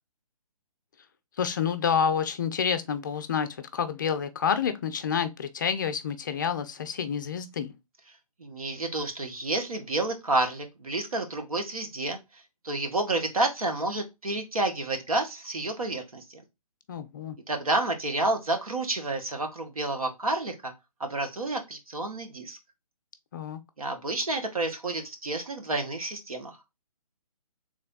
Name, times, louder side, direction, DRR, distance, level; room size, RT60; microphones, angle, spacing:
voice 1, 1.4-7.8 16.9-17.4 23.3-23.6, left 7 dB, 35° left, 0.4 m, -28 dB
voice 2, 8.4-16.4 17.5-20.7 21.0-22.6 23.8-26.6, right 2 dB, 70° right, 1.2 m, -30 dB
3.5 x 3.3 x 3.7 m
figure-of-eight pair, 140°, 19 cm